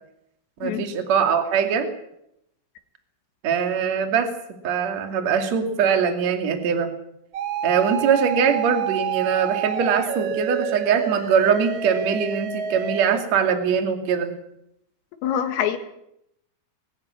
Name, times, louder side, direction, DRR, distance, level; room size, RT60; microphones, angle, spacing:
voice 1, 0.6-1.9 3.4-4.3 4.6-6.9 7.6-14.3, right 7 dB, 45° right, 6 dB, 2.7 m, -22 dB
sound 1, 7.3-13.2, right 8 dB, 65° right, 1.8 m, -28 dB
voice 2, 15.2-15.8, left 9 dB, 85° left, 8 dB, 4.6 m, -24 dB
22.0 x 14.0 x 9.7 m, 0.78 s
omnidirectional pair, 5.9 m